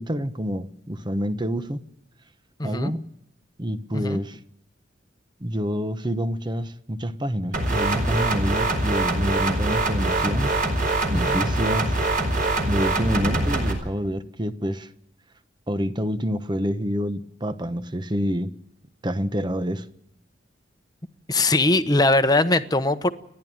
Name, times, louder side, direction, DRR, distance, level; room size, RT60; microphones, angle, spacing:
voice 1, 0.0-1.8 2.6-3.0 3.6-4.4 5.4-10.5 11.1-11.9 12.7-14.9 15.7-18.5 19.0-19.9, equal, 25° right, 1.0 m, -27 dB
voice 2, 2.6-2.9 3.9-4.2 11.1-11.4 21.3-23.1, left 2 dB, 20° left, 1.0 m, -21 dB
sound 1, 7.5-13.7, right 2 dB, 50° right, 4.9 m, -23 dB
30.0 x 11.0 x 8.9 m
head